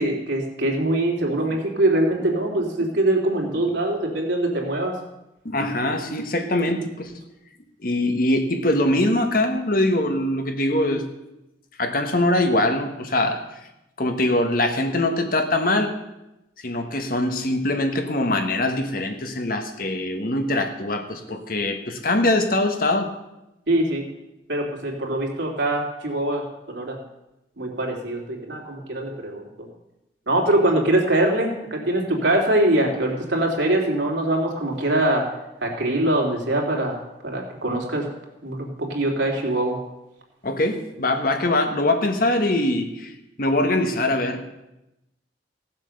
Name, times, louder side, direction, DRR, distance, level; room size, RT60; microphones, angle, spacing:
voice 1, 0.0-5.0 23.7-24.0 24.5-27.0 27.6-29.4 30.3-35.3 35.6-38.1 38.4-39.8, right 1 dB, 85° right, 0 dB, 3.1 m, -23 dB
voice 2, 5.4-7.1 7.8-11.1 11.8-13.4 14.0-16.0 16.6-23.1 30.6-30.7 40.4-43.1 43.4-44.4, left 1 dB, 50° left, 5 dB, 1.5 m, -23 dB
16.0 x 7.4 x 6.5 m, 0.93 s
head